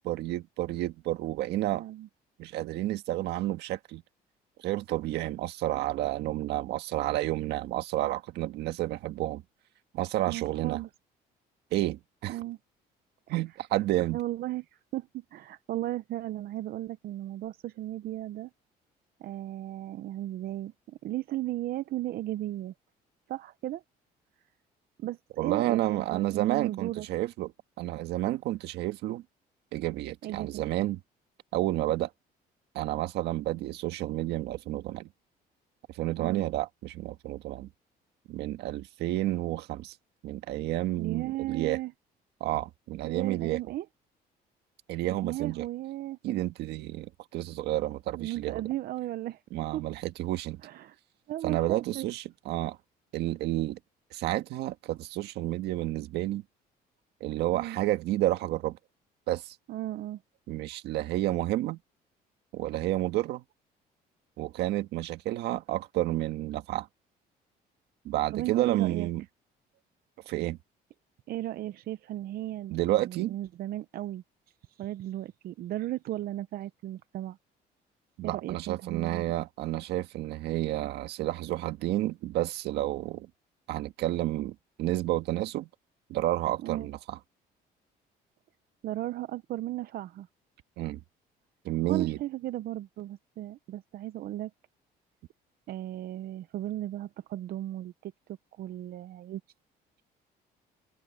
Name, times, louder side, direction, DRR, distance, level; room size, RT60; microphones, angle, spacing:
voice 1, 0.0-1.8 2.4-4.0 4.6-9.4 9.9-10.8 11.7-12.4 13.3-14.2 25.4-27.5 27.8-29.2 29.7-31.0 31.5-32.1 32.7-35.1 35.9-37.7 38.3-39.9 40.2-41.8 42.4-43.6 44.9-45.6 46.2-48.6 49.5-50.6 51.4-52.8 53.1-53.8 54.1-56.4 57.2-58.8 59.3-59.5 60.5-61.8 62.5-63.4 64.4-66.9 68.0-69.2 70.2-70.6 72.7-73.3 78.2-83.3 83.7-85.7 86.1-87.2 90.8-91.0 91.6-92.2, right 15 dB, 80° right, 1.6 m, -30 dB
voice 2, 1.8-2.1 10.3-10.9 12.3-12.6 14.1-18.5 19.2-22.7 23.3-23.8 25.0-27.1 30.2-30.7 36.2-36.4 41.0-41.9 43.0-43.9 45.2-46.2 48.1-49.4 49.7-49.8 50.6-51.0 51.3-52.1 57.5-57.8 59.7-60.2 68.3-69.1 71.3-74.2 74.7-77.4 78.2-79.3 86.6-86.9 88.8-90.3 91.8-94.5 95.7-98.1 98.6-99.4, right 14 dB, 65° right, 0.7 m, -35 dB
open air
cardioid pair, 110°, 17 cm